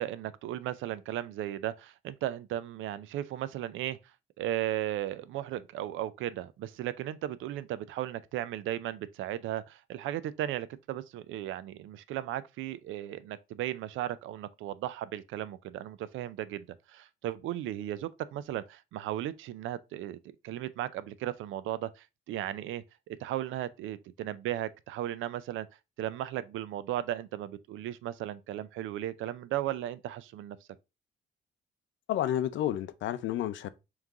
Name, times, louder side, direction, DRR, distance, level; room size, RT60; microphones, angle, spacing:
voice 1, 0.0-4.0 4.4-20.2 20.4-25.7 26.0-30.6, right 13 dB, 80° right, 0.4 m, -36 dB
voice 2, 32.1-33.7, left 11 dB, 70° left, 0.5 m, -30 dB
3.6 x 3.1 x 3.6 m
cardioid pair, 90°, 20 cm